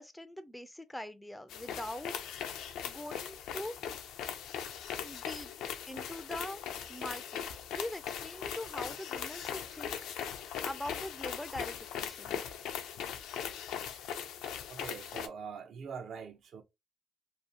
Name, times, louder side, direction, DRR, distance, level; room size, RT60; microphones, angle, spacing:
voice 1, 0.0-2.1 2.8-3.8 5.0-5.5 5.9-6.6 6.9-10.0 10.4-12.4, left 1 dB, 5° left, 0.3 m, -42 dB
sound 1, 1.5-15.3, left 8 dB, 90° left, 0.4 m, -40 dB
voice 2, 14.7-16.6, right 6 dB, 65° right, 0.5 m, -43 dB
2.7 x 2.3 x 2.5 m
cardioid pair, 90°, 0 cm